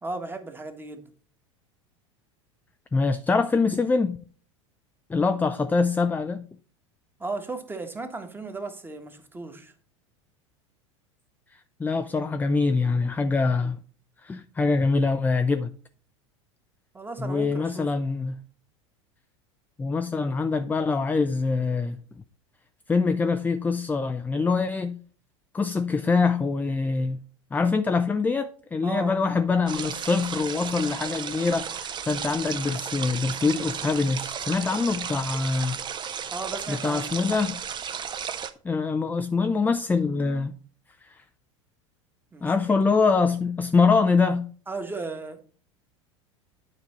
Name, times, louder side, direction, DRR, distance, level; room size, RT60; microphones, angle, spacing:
voice 1, 0.0-1.0 7.2-9.7 16.9-17.9 28.8-29.2 36.3-37.2 42.3-42.5 44.7-45.4, right 3 dB, 15° right, 1.4 m, -35 dB
voice 2, 2.9-4.2 5.1-6.4 11.5-13.8 14.2-15.7 17.2-18.4 19.8-22.0 22.9-25.0 25.5-27.2 27.5-35.8 36.7-37.6 38.6-40.5 41.0-41.2 42.4-44.5, left 4 dB, 10° left, 0.4 m, -24 dB
sound 1, 29.7-38.5, right 7 dB, 30° right, 0.8 m, -34 dB
9.4 x 5.2 x 4.3 m
hypercardioid pair, 85°, 16 cm